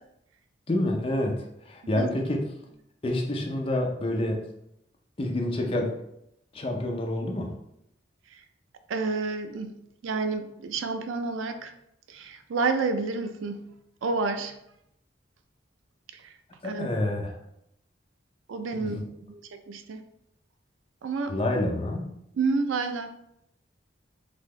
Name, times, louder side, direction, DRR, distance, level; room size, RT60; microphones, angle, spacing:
voice 1, 0.7-2.4 3.0-4.4 5.2-5.9 6.5-7.5 16.6-17.3 18.7-19.1 21.3-22.2, left 1 dB, 30° left, 1 dB, 0.5 m, -28 dB
voice 2, 8.9-9.7 10.0-11.7 12.1-13.6 14.0-14.5 16.6-16.9 18.5-20.0 21.0-21.3 22.4-23.1, right 4 dB, 90° right, 8 dB, 0.4 m, -29 dB
4.1 x 2.7 x 3.1 m, 0.78 s
head